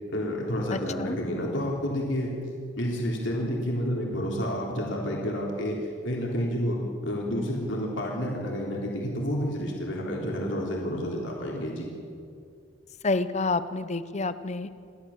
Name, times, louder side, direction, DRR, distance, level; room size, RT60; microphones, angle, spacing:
voice 1, 0.1-2.3 2.8-5.8 6.0-11.9, equal, 75° left, -2 dB, 3.6 m, -30 dB
voice 2, 0.7-1.2 13.0-14.7, left 3 dB, 35° left, 13 dB, 0.7 m, -28 dB
29.0 x 12.0 x 7.3 m, 2.4 s
head